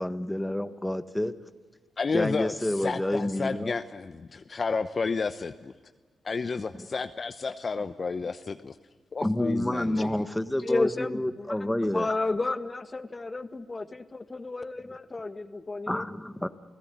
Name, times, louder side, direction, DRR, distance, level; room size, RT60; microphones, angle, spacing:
voice 1, 0.0-1.3 2.1-3.7 6.7-6.9 9.2-12.1 15.9-16.5, left 1 dB, 10° left, 10 dB, 1.5 m, -29 dB
voice 2, 2.0-5.7 6.2-8.7 9.1-10.2, left 4 dB, 45° left, 10 dB, 0.9 m, -31 dB
voice 3, 10.6-16.0, left 3 dB, 30° left, 11 dB, 1.5 m, -32 dB
29.0 x 17.0 x 9.7 m, 1.4 s
hypercardioid pair, 40°, 0 cm